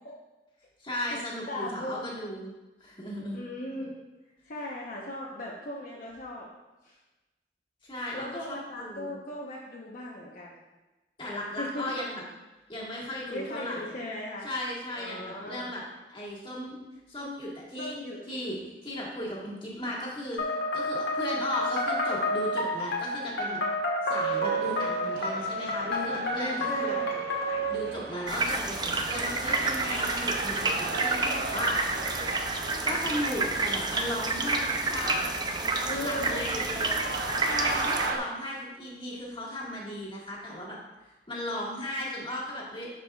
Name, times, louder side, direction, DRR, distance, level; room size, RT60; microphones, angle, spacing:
voice 1, 0.8-2.5 2.8-3.4 7.8-8.5 8.8-9.2 11.2-12.2 12.7-13.9 14.4-15.8 16.1-16.8 17.1-18.0 18.3-18.6 18.8-20.4 20.7-23.6 24.0-27.0 27.7-31.8 32.6-36.9 37.5-40.8 41.0-42.9, left 1 dB, 30° left, -5 dB, 1.6 m, -36 dB
voice 2, 1.5-2.2 3.3-3.9 4.5-6.5 6.8-7.0 8.1-10.6 11.6-11.8 13.3-14.5 14.9-15.6 17.8-18.2 25.8-27.2 35.9-37.2, left 1 dB, 55° left, -4 dB, 0.9 m, -38 dB
sound 1, 20.4-27.8, equal, 80° left, 1.4 m, -29 dB
sound 2, 24.5-38.2, right 3 dB, 65° right, 0.7 m, -38 dB
sound 3, 28.3-38.1, right 3 dB, 25° right, 0.5 m, -29 dB
11.0 x 4.8 x 2.3 m, 1.1 s
head